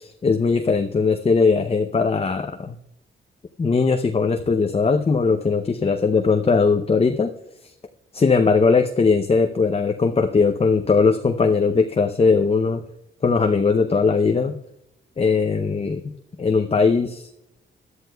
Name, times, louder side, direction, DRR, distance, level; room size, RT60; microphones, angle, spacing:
voice 1, 0.0-2.8 3.6-7.3 8.1-12.8 13.2-14.6 15.2-16.0 16.4-17.3, left 4 dB, 30° left, 5 dB, 0.6 m, -19 dB
17.0 x 11.0 x 2.3 m, 0.85 s
cardioid pair, 90°, 21 cm